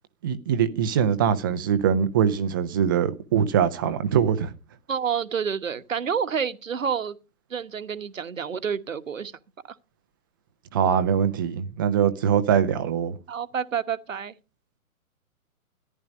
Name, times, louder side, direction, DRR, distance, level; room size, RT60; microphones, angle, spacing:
voice 1, 0.2-4.5 10.7-13.2, right 8 dB, 15° right, 0.6 m, -22 dB
voice 2, 4.9-7.2 7.5-9.3 9.7-9.8 13.3-14.3, right 7 dB, 60° right, 1.3 m, -29 dB
14.5 x 10.5 x 5.1 m
figure-of-eight pair, 125°, 44 cm